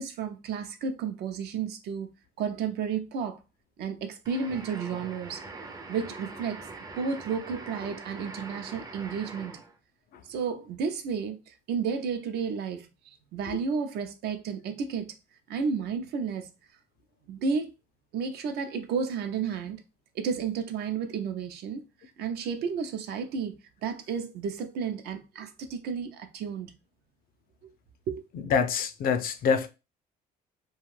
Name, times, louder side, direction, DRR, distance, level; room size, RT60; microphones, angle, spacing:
voice 1, 0.0-2.1 2.4-3.4 3.8-5.4 5.9-6.7 7.0-9.6 10.3-15.2 15.5-16.5 17.3-17.7 18.1-19.8 20.1-21.8 22.2-23.5 23.8-26.7 27.6-27.7 28.1-28.2, right 6 dB, 70° right, 0.5 m, -32 dB
sound 1, 4.2-9.8, right 3 dB, 20° right, 0.4 m, -43 dB
voice 2, 28.3-29.7, left 6 dB, 60° left, 0.4 m, -26 dB
2.6 x 2.3 x 3.1 m
cardioid pair, 110°, 17 cm